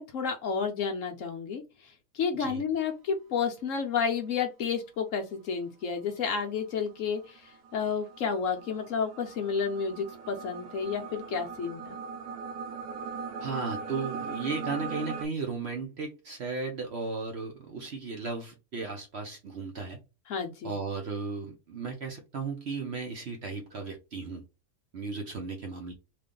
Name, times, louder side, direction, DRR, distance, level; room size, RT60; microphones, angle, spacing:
voice 1, 0.0-12.0 20.3-20.8, left 6 dB, 65° left, 4 dB, 0.9 m, -31 dB
sound 1, 6.6-15.3, right 5 dB, 70° right, 1.1 m, -40 dB
voice 2, 13.4-20.0 20.6-24.4 24.9-25.9, right 4 dB, 55° right, 2 dB, 0.8 m, -35 dB
3.2 x 2.5 x 3.6 m, 0.27 s
omnidirectional pair, 1.7 m